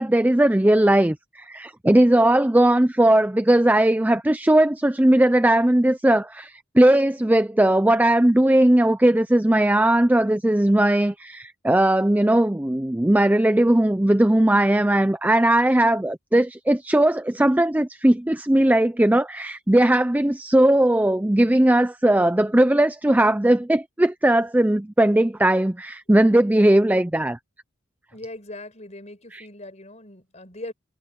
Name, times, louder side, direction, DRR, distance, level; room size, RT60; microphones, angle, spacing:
voice 1, 0.0-27.4 29.3-29.5, right 1 dB, 10° right, 0.5 m, -18 dB
voice 2, 28.1-30.7, left 1 dB, 35° left, 5.4 m, -39 dB
head